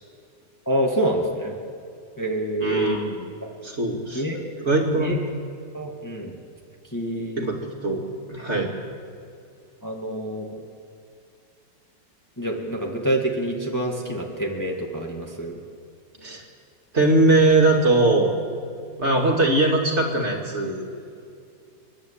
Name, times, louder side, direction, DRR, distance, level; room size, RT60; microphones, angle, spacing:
voice 1, 0.7-1.6 2.2-3.0 4.1-4.4 5.0-5.2 5.7-6.3 6.9-7.5 9.8-10.6 12.4-15.5, right 1 dB, 10° left, 0 dB, 2.0 m, -26 dB
voice 2, 2.6-3.2 3.6-4.2 4.6-5.2 7.4-7.5 7.8-8.0 8.3-8.7 16.2-16.4 16.9-18.4 19.0-20.9, right 2 dB, 35° right, 0 dB, 2.7 m, -20 dB
30.0 x 11.5 x 8.5 m, 2.4 s
omnidirectional pair, 2.0 m